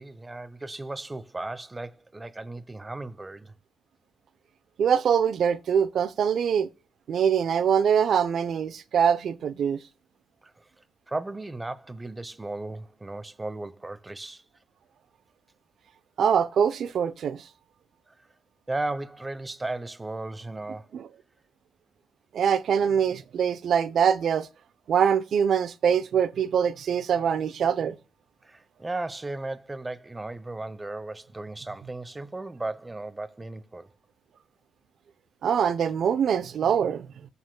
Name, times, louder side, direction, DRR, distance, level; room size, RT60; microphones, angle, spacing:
voice 1, 0.0-3.5 10.4-10.6 11.1-14.4 18.1-18.2 18.7-20.9 28.4-33.9, right 2 dB, 20° right, 0.9 m, -35 dB
voice 2, 4.8-6.7 7.1-9.8 16.2-17.4 20.9-21.1 22.3-24.5 24.9-28.0 35.4-37.1, right 7 dB, 65° right, 0.8 m, -23 dB
14.5 x 7.1 x 2.3 m
cardioid pair, 70°, 0 cm